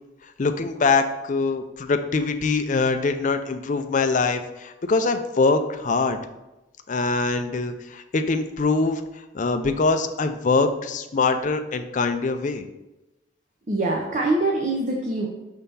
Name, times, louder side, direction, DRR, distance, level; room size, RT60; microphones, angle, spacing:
voice 1, 0.4-6.2 6.9-9.0 9.3-12.6, left 3 dB, 40° left, 7 dB, 0.4 m, -23 dB
voice 2, 13.7-15.3, right 2 dB, 40° right, -1 dB, 0.7 m, -24 dB
5.5 x 3.5 x 5.3 m, 1.0 s
head